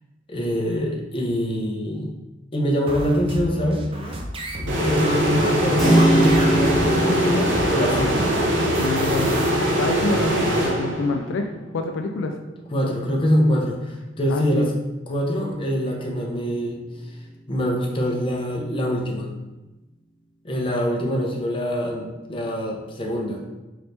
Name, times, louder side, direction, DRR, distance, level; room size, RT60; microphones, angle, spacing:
voice 1, 0.3-2.1 2.5-4.1 4.6-8.2 12.7-14.7 15.1-16.8 17.5-19.3 20.4-23.4, equal, 30° left, -1 dB, 0.7 m, -24 dB
sound 1, 2.9-9.5, equal, 30° right, 0.5 m, -32 dB
sound 2, 4.7-11.3, equal, 85° right, 0.8 m, -22 dB
Keyboard (musical), 5.8-14.3, right 1 dB, ahead, 1.2 m, -26 dB
voice 2, 8.8-9.3 9.7-12.3 14.3-14.7, left 3 dB, 80° left, 5 dB, 0.3 m, -27 dB
4.0 x 3.0 x 3.3 m, 1.1 s
head